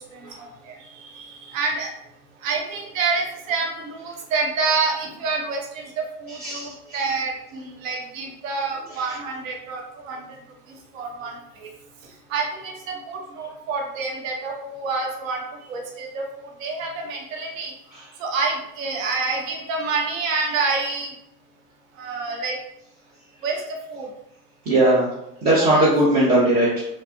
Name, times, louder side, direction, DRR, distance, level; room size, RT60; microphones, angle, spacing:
voice 1, 0.1-1.9 2.4-10.2 10.9-11.7 12.3-15.4 15.7-17.7 18.2-21.1 22.0-22.6 23.4-24.1 25.6-25.9, right 4 dB, 60° right, 1 dB, 0.6 m, -28 dB
voice 2, 6.3-7.1 8.9-9.2 17.9-18.1 24.7-25.2 25.4-26.8, right 1 dB, 15° right, -8 dB, 0.3 m, -20 dB
2.7 x 2.3 x 2.2 m, 0.79 s
figure-of-eight pair, 75°, 45 cm